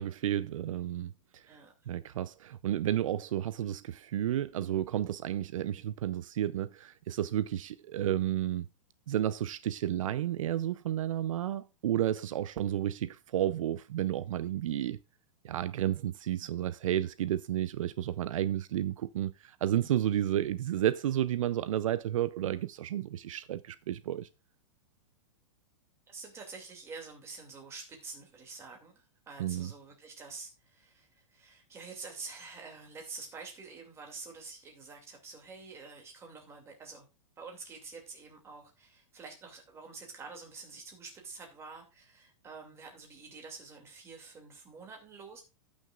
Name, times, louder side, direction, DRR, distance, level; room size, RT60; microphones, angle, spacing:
voice 1, 0.0-1.4 1.9-8.7 9.1-15.0 15.4-24.3 29.4-29.7, right 11 dB, 80° right, 0.5 m, -32 dB
voice 2, 26.1-37.1 37.4-45.4, right 4 dB, 15° right, 2.4 m, -47 dB
16.5 x 6.3 x 2.4 m
supercardioid pair, 155°, 17 cm